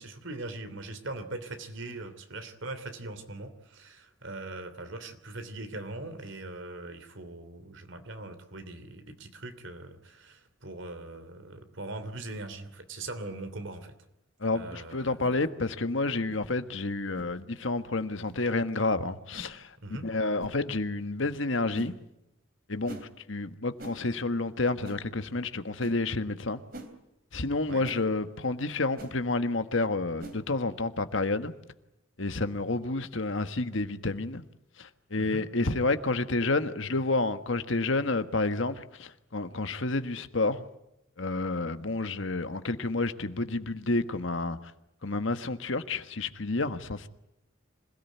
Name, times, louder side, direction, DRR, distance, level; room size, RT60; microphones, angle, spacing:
voice 1, 0.0-13.9 14.5-15.4 19.8-20.1 27.7-27.8 35.2-35.4, right 2 dB, 65° right, 2.9 m, -41 dB
voice 2, 14.4-19.7 20.0-21.9 22.7-23.0 23.3-26.6 27.3-31.5 32.2-34.4 34.8-40.6 41.2-44.6 45.0-47.1, left 2 dB, 65° left, 1.4 m, -29 dB
sound 1, 15.2-15.4 16.3-16.5 17.1-17.3 18.2-18.4 19.3-19.5 20.4-20.6 21.7-21.9 22.9-23.1 23.8-24.0 24.8-25.0 25.8-26.0 26.7-26.9 27.8-28.0 29.0-29.1 30.2-30.4, right 1 dB, 45° right, 2.9 m, -44 dB
26.5 x 17.5 x 9.3 m
head